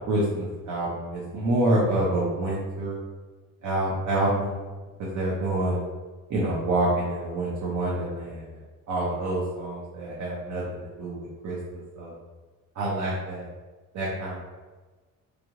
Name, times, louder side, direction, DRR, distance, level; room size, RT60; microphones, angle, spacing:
voice 1, 0.1-3.0 3.6-4.6 5.0-5.8 6.3-8.6 8.9-12.1 12.7-13.4 13.9-14.4, right 1 dB, 60° right, -6 dB, 0.8 m, -27 dB
3.2 x 2.6 x 2.9 m, 1.3 s
cardioid pair, 120°, 32 cm